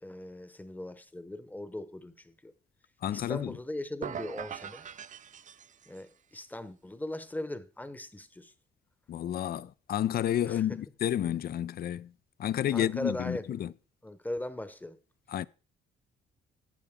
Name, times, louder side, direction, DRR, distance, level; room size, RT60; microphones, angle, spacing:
voice 1, 0.0-2.5 3.1-4.9 5.9-8.5 10.5-10.8 12.7-13.7 14.0-15.0, left 1 dB, 10° left, 0.9 m, -39 dB
voice 2, 3.0-3.5 9.1-12.1 12.4-13.7 15.3-15.4, left 11 dB, 50° left, 0.4 m, -30 dB
sound 1, 4.0-6.1, right 8 dB, 40° right, 0.4 m, -42 dB
12.0 x 8.7 x 3.6 m
cardioid pair, 90°, 20 cm